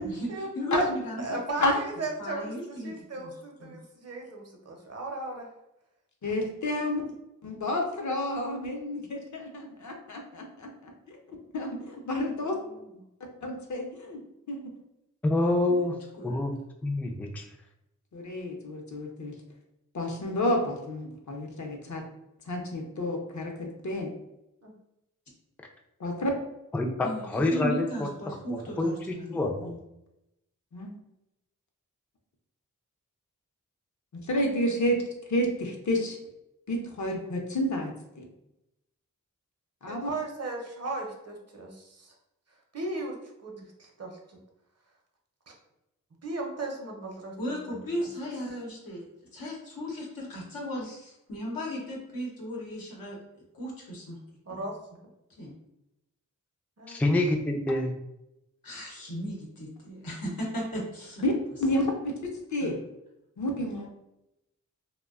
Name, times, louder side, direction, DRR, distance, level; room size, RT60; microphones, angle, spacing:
voice 1, 0.5-1.4 2.2-3.3 3.6-3.8 15.7-15.9 16.2-16.4 27.0-29.8 47.4-49.0 49.3-53.2 53.5-54.2 55.4-55.5 58.6-61.2 62.6-62.7, equal, 90° left, -3 dB, 0.8 m, -36 dB
voice 2, 1.2-5.5 6.8-7.1 12.4-12.9 24.6-24.7 39.9-42.1 42.7-44.4 45.5-45.6 46.2-48.1 54.5-54.8 56.8-57.0, right 2 dB, 50° right, 1 dB, 0.7 m, -37 dB
voice 3, 6.2-7.0 7.4-11.2 11.5-12.6 13.4-14.2 14.5-14.7 18.1-19.3 19.9-22.0 22.5-24.1 26.0-26.3 30.7-30.9 34.2-35.0 35.3-36.2 36.7-38.2 39.8-40.1 61.2-61.3 61.6-62.8 63.4-63.9, left 1 dB, 60° left, 2 dB, 0.6 m, -30 dB
voice 4, 15.2-15.9 16.2-16.5 16.8-17.5 26.7-28.1 28.5-29.7 56.9-57.9, left 2 dB, 5° left, 2 dB, 0.3 m, -27 dB
2.5 x 2.1 x 2.3 m, 0.88 s
cardioid pair, 40°, 33 cm